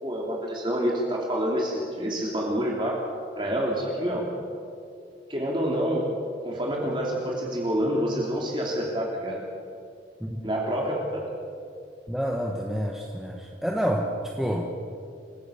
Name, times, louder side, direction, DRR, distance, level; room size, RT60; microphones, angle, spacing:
voice 1, 0.0-3.0 3.4-4.2 5.3-6.2 6.4-9.4 10.4-11.2, equal, 25° right, -2 dB, 3.0 m, -27 dB
voice 2, 12.1-14.7, equal, ahead, 0 dB, 1.4 m, -28 dB
28.0 x 17.0 x 7.0 m, 2.4 s
head